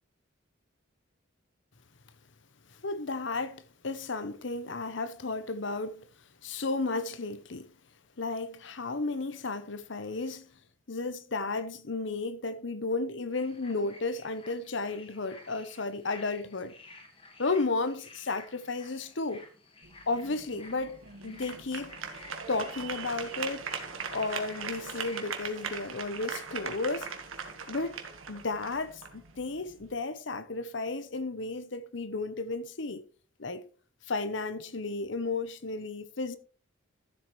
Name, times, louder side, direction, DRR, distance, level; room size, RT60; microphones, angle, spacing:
voice 1, 2.8-6.1 6.4-7.7 8.2-10.5 10.9-16.8 17.4-19.4 20.1-22.0 22.5-23.7 24.1-27.1 27.7-28.0 28.3-33.0 33.4-33.7 34.1-36.4, left 3 dB, 65° left, 0.9 m, -33 dB
sound 1, 13.3-26.0, left 2 dB, 25° left, 1.8 m, -54 dB
sound 2, 19.8-29.9, right 5 dB, 90° right, 1.7 m, -40 dB
13.5 x 7.7 x 3.2 m
head